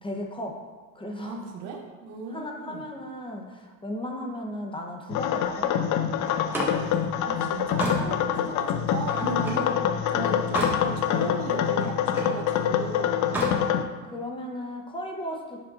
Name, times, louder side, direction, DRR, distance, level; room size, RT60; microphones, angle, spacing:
voice 1, 0.0-0.5 0.9-1.4 2.3-6.6 12.9-13.7 14.0-15.6, left 1 dB, 15° left, 1 dB, 0.8 m, -36 dB
voice 2, 1.2-2.8 7.2-9.8 10.1-13.2, right 3 dB, 80° right, 1 dB, 1.0 m, -36 dB
sound 1, 5.1-13.8, left 9 dB, 55° left, 0.5 m, -26 dB
Slam, 6.3-9.7 10.2-10.8 11.2-12.4 13.2-13.6, right 1 dB, 5° right, 1.5 m, -32 dB
7.5 x 5.2 x 2.5 m, 1.4 s
supercardioid pair, 105°, 35 cm